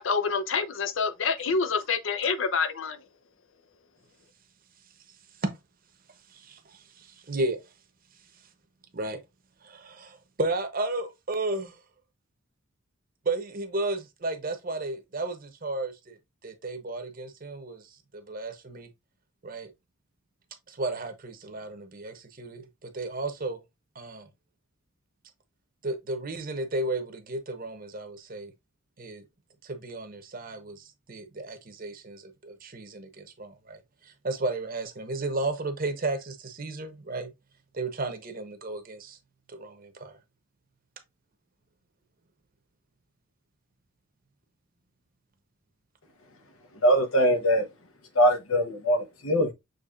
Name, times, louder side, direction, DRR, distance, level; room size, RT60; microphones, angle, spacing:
voice 1, 0.0-3.0, left 5 dB, 65° left, 0.6 m, -27 dB
voice 2, 6.3-7.6 8.9-9.2 9.6-11.7 13.2-16.2 16.4-17.8 18.1-18.9 19.4-19.7 20.7-23.6 23.9-24.3 25.8-28.5 29.0-29.2 29.6-33.8 34.2-37.3 37.7-39.2 39.5-40.2, right 2 dB, 45° right, 0.9 m, -33 dB
voice 3, 46.8-47.7 48.1-49.5, equal, 85° left, 1.1 m, -22 dB
6.6 x 3.2 x 2.4 m
head